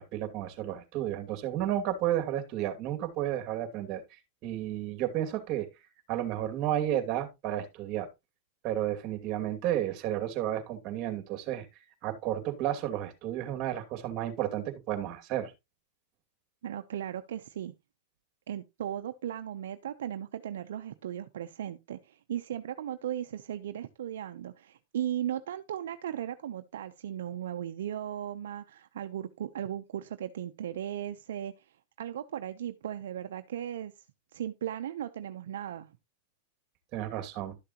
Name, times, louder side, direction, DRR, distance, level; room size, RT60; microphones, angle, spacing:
voice 1, 0.0-4.0 4.4-5.7 6.1-8.1 8.6-11.7 12.0-15.5 36.9-37.6, right 12 dB, 40° right, 2.5 m, -32 dB
voice 2, 16.6-17.7 18.5-31.5 32.0-33.9 34.3-35.9, right 10 dB, 80° right, 0.8 m, -37 dB
12.5 x 6.7 x 3.0 m
hypercardioid pair, 130°, 0 cm